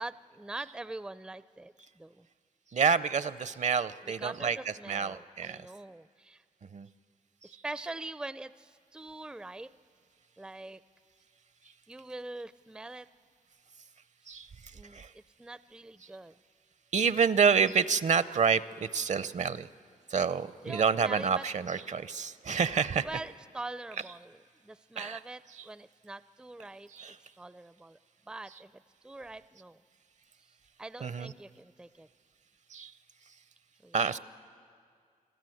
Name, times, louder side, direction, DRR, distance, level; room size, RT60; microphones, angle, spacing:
voice 1, 0.0-2.3 4.0-6.4 7.6-9.7 10.4-10.8 11.9-13.1 14.7-16.4 20.6-21.5 23.0-26.9 27.4-28.0 28.3-29.8 30.8-32.1 33.8-34.0, right 2 dB, 5° right, 15 dB, 0.4 m, -43 dB
voice 2, 2.7-5.7 6.7-6.9 7.4-7.5 14.3-14.5 14.9-15.1 16.9-19.7 20.1-23.1 25.0-25.2 26.9-27.2 31.0-31.3 32.7-32.9 33.9-34.2, right 6 dB, 50° right, 16 dB, 0.6 m, -28 dB
26.0 x 13.0 x 7.8 m, 2.2 s
cardioid pair, 60°, 15 cm